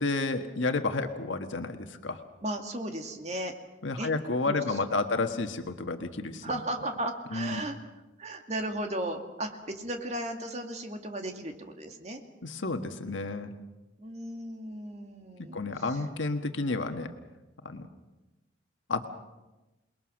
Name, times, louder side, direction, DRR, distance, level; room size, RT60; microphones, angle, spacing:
voice 1, 0.0-2.2 3.8-6.4 7.3-7.6 12.4-13.5 15.5-17.1 17.6-17.9 18.9-19.1, left 3 dB, 90° left, 6 dB, 1.5 m, -31 dB
voice 2, 2.4-3.5 4.0-4.1 4.4-4.8 6.4-7.8 8.2-12.2 14.0-16.0, right 1 dB, 35° right, 4 dB, 2.3 m, -35 dB
28.5 x 20.5 x 6.4 m, 1.1 s
head